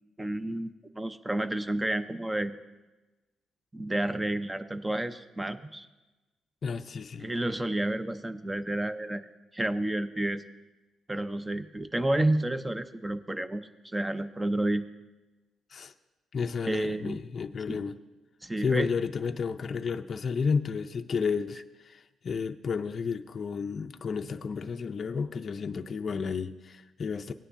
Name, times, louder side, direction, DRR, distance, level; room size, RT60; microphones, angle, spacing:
voice 1, 0.2-2.6 3.7-5.9 7.2-9.2 9.5-10.4 11.1-13.6 13.9-14.8 16.6-17.2 17.7-17.8 18.4-18.9, right 1 dB, 15° right, 11 dB, 0.7 m, -30 dB
voice 2, 6.6-7.3 15.7-15.9 16.3-18.0 18.6-27.3, left 5 dB, 45° left, 7 dB, 0.5 m, -32 dB
18.0 x 9.7 x 2.6 m, 1.1 s
cardioid pair, 90°, 0 cm